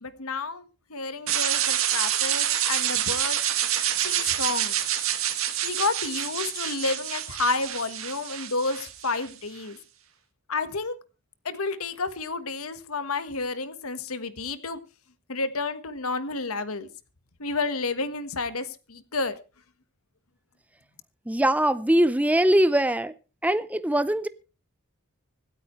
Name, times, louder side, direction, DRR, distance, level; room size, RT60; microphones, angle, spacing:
voice 1, 0.0-3.4 4.0-4.8 5.6-9.8 10.5-10.9 11.4-14.8 15.3-16.9 17.4-19.3, left 3 dB, 85° left, 1.4 m, -30 dB
sound 1, 1.3-9.3, right 11 dB, 75° right, 2.0 m, -27 dB
voice 2, 21.3-23.1 23.4-24.3, right 1 dB, 5° right, 0.5 m, -22 dB
25.0 x 9.1 x 3.2 m
head